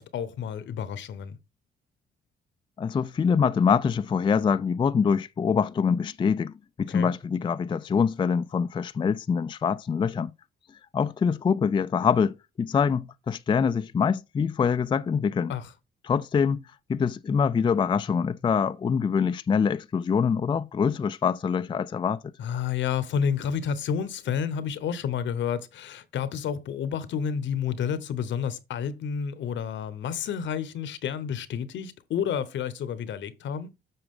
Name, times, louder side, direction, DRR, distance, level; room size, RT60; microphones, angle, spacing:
voice 1, 0.0-1.4 6.9-7.1 15.5-15.7 22.4-33.7, left 7 dB, 70° left, 0.9 m, -30 dB
voice 2, 2.8-6.5 6.8-10.3 10.9-15.5 16.0-16.6 16.9-22.2, left 6 dB, 25° left, 0.3 m, -24 dB
7.9 x 5.9 x 3.7 m
cardioid pair, 90°, 20 cm